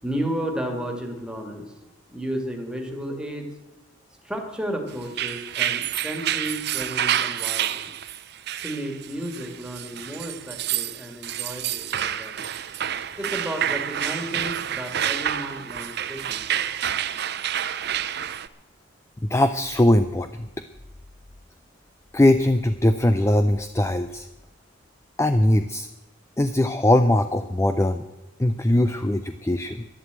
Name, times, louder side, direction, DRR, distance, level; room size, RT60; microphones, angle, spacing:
voice 1, 0.0-1.7 2.1-3.5 4.2-7.9 8.6-12.4 13.2-16.6, right 1 dB, 5° right, 3 dB, 2.0 m, -33 dB
sound 1, 5.0-18.5, right 10 dB, 55° right, 0.6 m, -28 dB
voice 2, 19.2-20.5 22.1-24.3 25.2-25.9 26.4-28.0 28.4-29.9, left 1 dB, 15° left, 10 dB, 0.4 m, -20 dB
11.5 x 11.0 x 8.1 m, 1.0 s
head